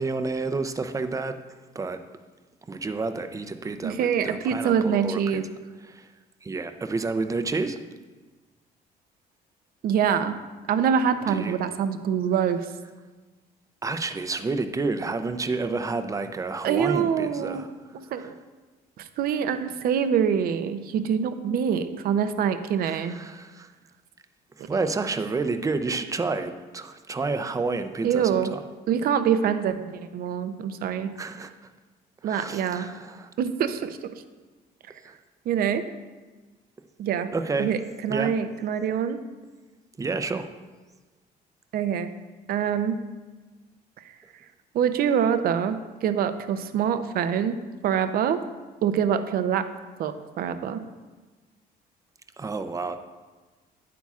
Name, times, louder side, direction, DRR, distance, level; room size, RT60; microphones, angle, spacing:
voice 1, 0.0-1.4 1.7-2.0 2.7-5.4 5.8-6.1 6.4-7.8 11.3-11.6 13.8-17.7 18.1-18.3 22.8-23.7 24.6-28.6 31.2-31.5 32.2-33.3 35.0-35.2 37.3-37.7 38.1-38.3 40.0-40.5 52.4-53.0, right 3 dB, 20° right, 9 dB, 0.5 m, -30 dB
voice 2, 3.8-5.5 9.8-10.4 10.7-12.7 16.6-17.7 18.1-18.3 19.0-23.1 28.0-28.5 28.9-31.1 32.2-32.9 33.4-34.2 35.5-35.9 37.0-37.3 37.6-39.2 41.7-42.1 42.5-43.0 44.7-47.6 47.8-48.4 48.8-49.7 50.0-50.8, right 8 dB, 60° right, 10 dB, 0.6 m, -25 dB
9.2 x 8.3 x 2.4 m, 1.3 s
cardioid pair, 110°, 17 cm